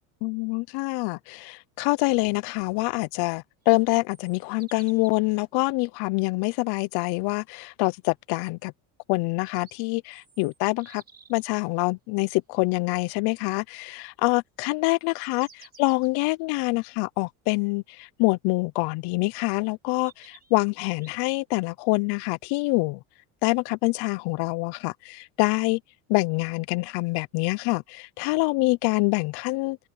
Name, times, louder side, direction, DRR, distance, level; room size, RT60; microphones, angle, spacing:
voice 1, 0.2-8.7 9.1-11.0 11.3-23.0 23.4-25.8 26.1-29.8, left 26 dB, 60° left, 0.8 m, -26 dB
sound 1, 3.6-5.3 9.2-11.5 14.9-16.1 17.2-17.3 19.1-19.2 20.0-21.4, right 5 dB, 20° right, 5.7 m, -54 dB
supercardioid pair, 110°, 45 cm